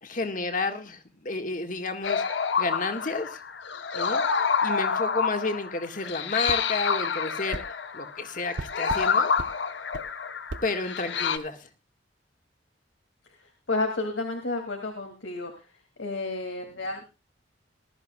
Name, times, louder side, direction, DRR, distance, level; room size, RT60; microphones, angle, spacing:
voice 1, 0.0-2.2 2.6-3.4 3.9-7.6 7.9-9.3 10.6-11.7, left 3 dB, 45° left, 6 dB, 1.8 m, -31 dB
sound 1, 2.0-11.4, left 6 dB, 70° left, 1.0 m, -28 dB
sound 2, 6.5-6.6 7.5-7.7 8.6-9.1 9.4-9.5 9.9-10.1 10.5-10.7, right 2 dB, 80° right, 0.8 m, -36 dB
voice 2, 13.7-15.5 16.0-17.0, left 2 dB, 90° left, 3 dB, 2.5 m, -31 dB
20.0 x 13.0 x 2.3 m, 0.31 s
head